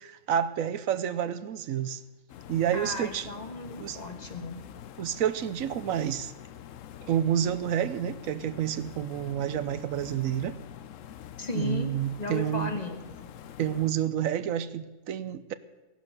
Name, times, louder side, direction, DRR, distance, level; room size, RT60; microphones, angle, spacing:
voice 1, 0.0-2.0 2.5-3.3 3.8-4.0 5.0-6.3 7.1-10.6 11.5-12.8 13.6-15.5, right 9 dB, 80° right, 1.2 m, -29 dB
sound 1, 2.3-13.9, left 10 dB, 70° left, 1.0 m, -46 dB
voice 2, 2.7-4.6 11.4-11.9 12.2-13.3, left 3 dB, 30° left, 1.5 m, -35 dB
16.5 x 11.5 x 6.6 m
omnidirectional pair, 1.4 m